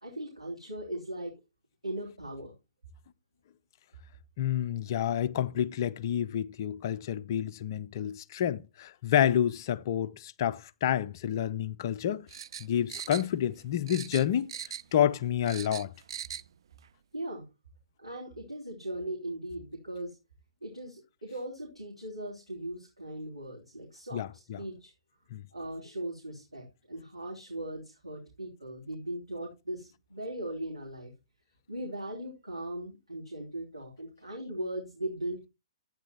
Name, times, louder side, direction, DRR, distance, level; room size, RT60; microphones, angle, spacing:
voice 1, 0.0-1.3 1.8-2.5 17.1-17.4 18.0-20.2 20.6-24.9 25.5-31.1 31.7-35.5, right 1 dB, 85° right, 3.0 m, -39 dB
voice 2, 4.4-12.3 12.6-14.5 14.9-15.9 24.1-24.6 25.3-25.4, left 10 dB, 40° left, 0.6 m, -29 dB
sound 1, 12.3-13.6 13.9-15.0 15.3-16.5 16.8-16.9, right 9 dB, 50° right, 0.4 m, -40 dB
12.0 x 8.9 x 2.9 m
figure-of-eight pair, 120°, 3 cm